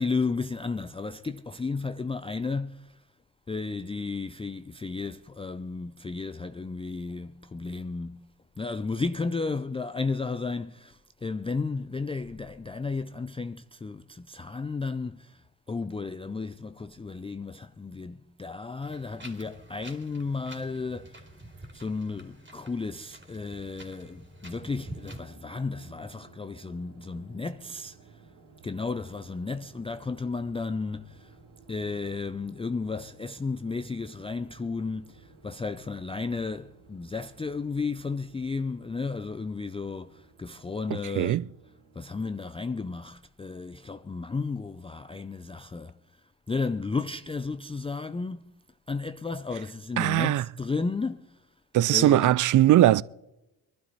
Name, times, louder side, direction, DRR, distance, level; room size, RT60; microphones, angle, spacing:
voice 1, 0.0-3.0 3.5-8.3 8.6-21.3 21.7-28.2 28.6-31.4 31.7-41.4 41.9-46.0 46.5-48.5 48.9-51.4 51.9-52.3, left 4 dB, 10° left, 0.5 m, -33 dB
Wind, 18.8-25.2, right 1 dB, 20° right, 3.1 m, -47 dB
sound 1, 24.4-42.5, right 4 dB, 70° right, 2.5 m, -56 dB
voice 2, 40.9-41.4 50.0-50.5 51.7-53.0, right 13 dB, 40° right, 0.5 m, -20 dB
23.0 x 12.0 x 4.1 m
hypercardioid pair, 60°, 49 cm